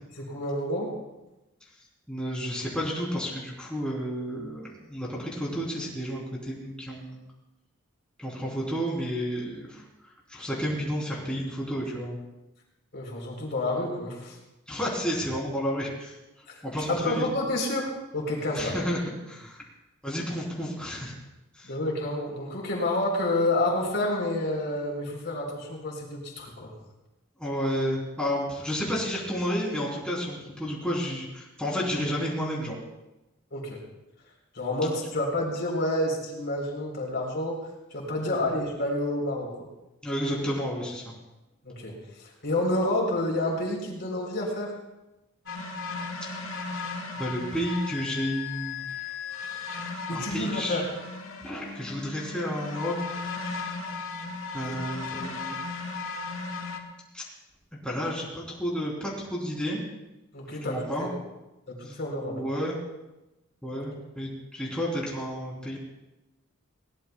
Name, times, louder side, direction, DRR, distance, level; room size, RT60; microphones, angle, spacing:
voice 1, 0.2-0.9 12.9-14.4 16.5-16.6 16.9-18.8 21.6-26.7 33.5-33.8 34.5-39.7 41.6-44.7 50.1-50.9 54.6-54.8 60.3-61.1 61.7-62.4 63.7-63.8, left 1 dB, 55° left, -1 dB, 3.7 m, -29 dB
voice 2, 2.1-7.2 8.2-12.2 14.7-16.2 16.6-17.3 18.5-19.0 19.3-19.6 20.0-21.1 21.5-21.7 27.4-32.8 38.2-38.4 40.0-41.1 47.2-49.4 50.1-50.8 51.4-53.0 54.5-55.5 57.1-57.2 57.8-59.8 60.6-61.1 61.8-61.9 62.3-62.8 63.6-65.8, equal, 5° left, -4 dB, 3.4 m, -31 dB
sound 1, 45.5-56.8, left 4 dB, 85° left, 1.8 m, -36 dB
21.0 x 18.0 x 2.3 m, 0.99 s
head